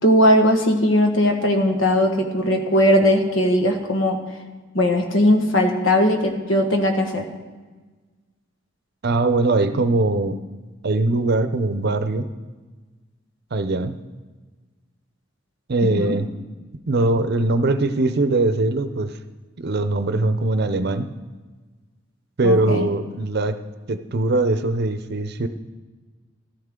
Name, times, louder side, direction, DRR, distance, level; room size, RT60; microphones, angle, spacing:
voice 1, 0.0-4.2 4.7-7.2 15.8-16.1 22.4-22.9, equal, 85° left, 4 dB, 1.5 m, -18 dB
voice 2, 9.0-10.4 10.8-12.3 13.5-14.0 15.7-16.3 16.9-19.2 19.6-21.1 22.4-23.6 23.9-25.5, right 2 dB, 55° right, 10 dB, 0.6 m, -21 dB
14.5 x 12.5 x 3.7 m, 1.3 s
head